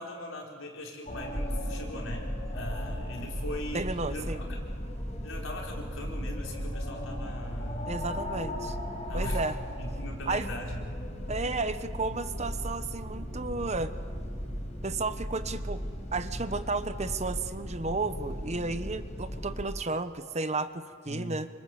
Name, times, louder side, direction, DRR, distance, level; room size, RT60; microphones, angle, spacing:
voice 1, 0.0-2.3 2.5-4.7 5.2-7.9 9.1-9.4 9.8-11.1 21.1-21.4, left 1 dB, 80° left, -1 dB, 4.9 m, -40 dB
sound 1, 1.1-19.7, equal, 35° left, 4.9 m, -36 dB
voice 2, 3.7-4.4 7.9-8.8 9.1-9.6 10.3-10.5 11.3-13.9 14.8-15.8 16.1-21.5, right 3 dB, 35° right, 11 dB, 1.1 m, -33 dB
sound 2, 5.8-13.9, equal, 60° right, 6.5 m, -50 dB
28.0 x 26.0 x 7.9 m, 2.1 s
head